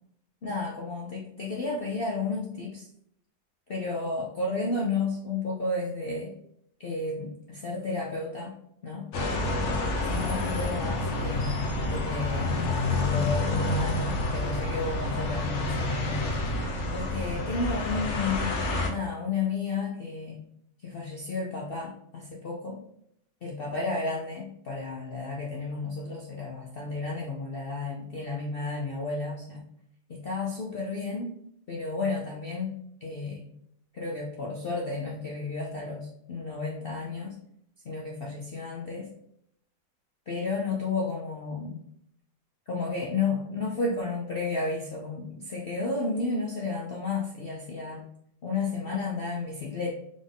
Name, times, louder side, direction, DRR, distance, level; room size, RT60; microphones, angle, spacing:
voice 1, 0.4-2.9 3.7-6.3 6.8-8.5 8.8-9.1 10.0-11.5 11.9-12.6 13.0-16.4 16.9-18.5 18.9-20.4 20.8-22.8 23.4-29.6 30.1-31.3 31.7-32.7 33.0-33.4 33.9-37.4 37.8-39.1 40.3-41.8 42.7-48.0 48.4-49.9, left 3 dB, 80° left, -2 dB, 0.5 m, -32 dB
sound 1, 9.1-18.9, left 2 dB, 55° left, 0.9 m, -28 dB
3.7 x 3.6 x 3.8 m, 0.72 s
omnidirectional pair, 1.9 m